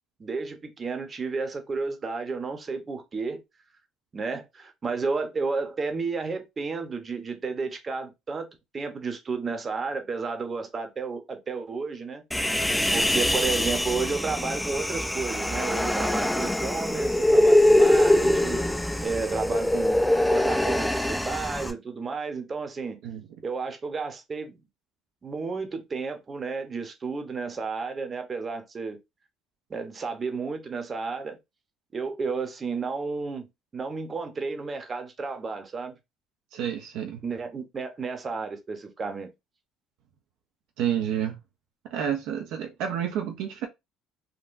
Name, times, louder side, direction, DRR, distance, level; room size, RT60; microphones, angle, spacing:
voice 1, 0.2-3.4 4.1-8.5 8.7-12.2 12.9-18.6 19.0-23.0 23.4-24.6 25.2-29.0 29.7-31.4 31.9-33.5 33.7-36.0 37.2-39.3, right 4 dB, 30° right, 0.8 m, -32 dB
Human voice, 12.3-21.7, left 1 dB, 5° left, 0.5 m, -23 dB
voice 2, 36.5-37.2 40.8-41.4 41.9-43.7, right 9 dB, 75° right, 0.5 m, -29 dB
3.6 x 2.1 x 2.5 m
supercardioid pair, 90°, 0 cm